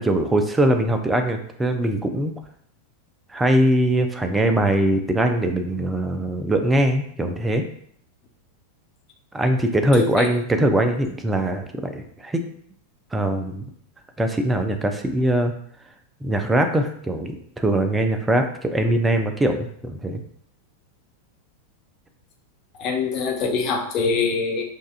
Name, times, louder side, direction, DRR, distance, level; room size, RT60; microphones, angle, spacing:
voice 1, 0.0-2.3 3.3-7.6 9.3-12.4 13.1-13.6 14.2-15.5 16.2-20.2, right 1 dB, 10° right, 6 dB, 0.5 m, -21 dB
voice 2, 9.9-10.3 22.8-24.6, left 5 dB, 35° left, 2 dB, 0.7 m, -24 dB
6.3 x 2.4 x 2.5 m, 0.64 s
figure-of-eight pair, 90°, 0 cm